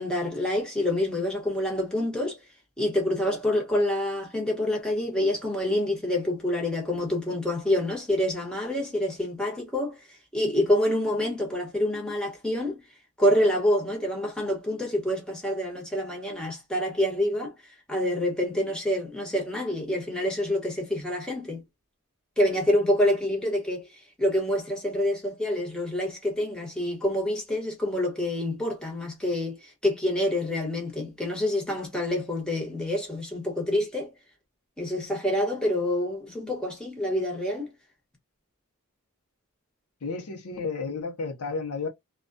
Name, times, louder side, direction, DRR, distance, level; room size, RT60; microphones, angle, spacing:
voice 1, 0.0-2.4 2.8-10.0 10.3-12.8 13.2-17.5 17.9-21.6 22.4-23.9 24.2-34.1 34.8-37.7, left 1 dB, 5° left, 0.8 m, -27 dB
voice 2, 40.0-41.9, left 4 dB, 85° left, 0.6 m, -32 dB
2.2 x 2.2 x 2.5 m
head